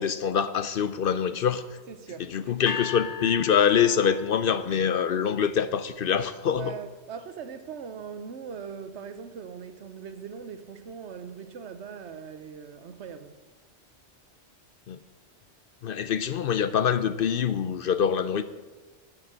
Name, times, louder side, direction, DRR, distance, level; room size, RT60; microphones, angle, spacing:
voice 1, 0.0-1.6 2.2-6.8 14.9-15.0 15.8-18.4, left 8 dB, 60° left, 0.7 m, -25 dB
voice 2, 1.9-2.6 6.5-13.4, right 6 dB, 75° right, 1.1 m, -40 dB
sound 1, 2.7-4.8, left 6 dB, 80° left, 1.1 m, -38 dB
11.5 x 5.9 x 8.0 m
omnidirectional pair, 1.2 m